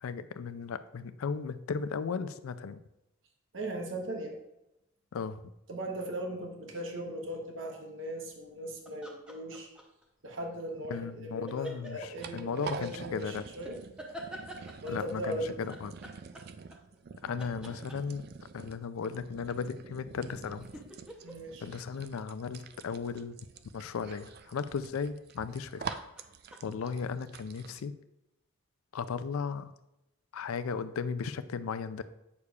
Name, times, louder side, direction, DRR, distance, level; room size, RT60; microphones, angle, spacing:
voice 1, 0.0-2.8 5.1-5.4 10.9-13.4 14.9-15.9 17.2-18.2 18.5-20.7 21.6-23.4 23.7-25.9 26.6-27.9 28.9-29.7 30.3-32.0, left 5 dB, 85° left, 12 dB, 0.4 m, -36 dB
voice 2, 3.5-4.4 5.7-9.7 10.2-13.8 14.8-15.5 21.2-21.7, right 1 dB, 65° right, 1 dB, 1.1 m, -38 dB
sound 1, 8.9-10.0 11.5-12.3 13.7-15.1 15.7-17.1 17.4-18.3 20.1-22.8 25.2-25.6 25.9-26.9, equal, 5° right, 0.7 m, -47 dB
sound 2, 11.9-27.8, right 6 dB, 45° right, 0.3 m, -47 dB
8.4 x 6.5 x 2.4 m, 0.89 s
head